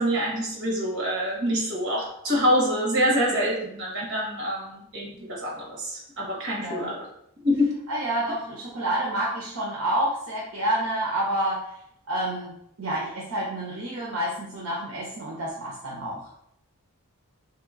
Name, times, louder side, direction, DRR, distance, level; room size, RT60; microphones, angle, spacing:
voice 1, 0.0-7.0 7.4-7.7, equal, 50° right, -3 dB, 1.5 m, -26 dB
voice 2, 6.6-6.9 7.9-11.7 12.1-16.3, right 1 dB, 70° right, -4 dB, 0.8 m, -29 dB
3.2 x 2.9 x 3.7 m, 0.74 s
head